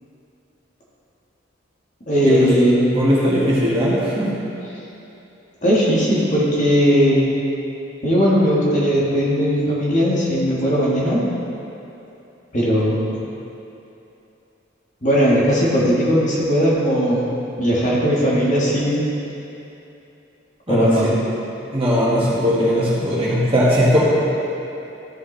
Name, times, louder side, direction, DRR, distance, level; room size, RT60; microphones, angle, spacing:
voice 1, 2.1-2.9 5.6-7.4 8.0-11.2 12.5-13.2 15.0-17.2 17.6-19.0 20.7-21.1, equal, 40° left, -7 dB, 1.7 m, -18 dB
voice 2, 2.9-4.3 20.7-21.2 21.7-24.0, equal, 30° right, -8 dB, 1.8 m, -19 dB
13.5 x 5.4 x 3.3 m, 2.9 s
head